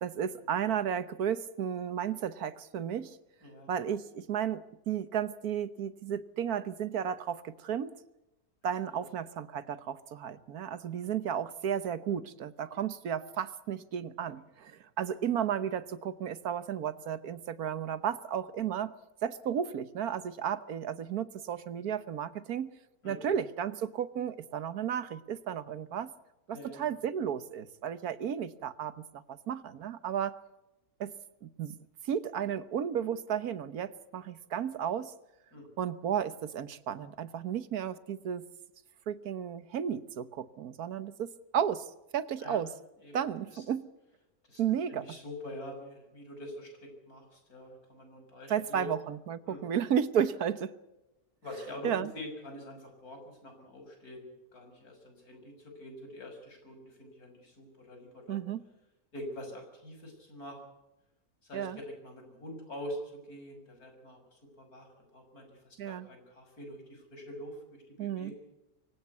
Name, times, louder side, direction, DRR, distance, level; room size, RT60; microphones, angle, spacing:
voice 1, 0.0-3.2 3.7-8.0 8.6-18.9 19.2-22.7 23.0-26.1 26.5-30.4 31.0-31.1 31.4-31.7 32.0-35.1 35.8-38.4 39.1-41.9 42.1-42.7 43.1-43.9 44.6-45.1 48.5-50.8 51.8-52.1 58.3-58.6 61.5-61.8 65.8-66.1 68.0-68.3, right 8 dB, 85° right, 14 dB, 1.6 m, -33 dB
voice 2, 3.4-3.7 8.9-9.0 23.0-23.3 26.5-26.8 35.5-35.7 42.4-42.6 43.0-43.1 43.5-43.6 44.5-44.6 44.9-48.9 49.5-49.7 51.4-58.4 59.1-60.6 61.4-61.7 62.0-63.0 63.3-68.4, left 1 dB, 80° left, 4 dB, 6.9 m, -45 dB
24.5 x 16.5 x 8.3 m, 0.97 s
omnidirectional pair, 1.6 m